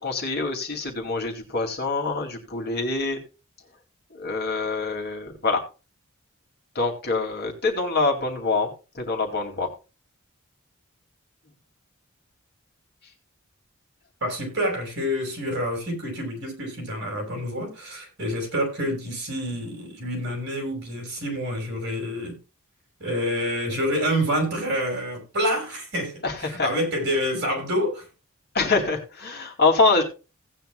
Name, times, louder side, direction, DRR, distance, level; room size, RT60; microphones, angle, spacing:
voice 1, 0.0-3.2 4.1-5.6 6.7-8.7 8.9-9.7 26.2-26.7 28.5-30.0, left 3 dB, 50° left, 2.5 m, -25 dB
voice 2, 14.2-22.4 23.0-28.1, equal, 50° right, 5.6 m, -27 dB
17.0 x 9.1 x 2.3 m
head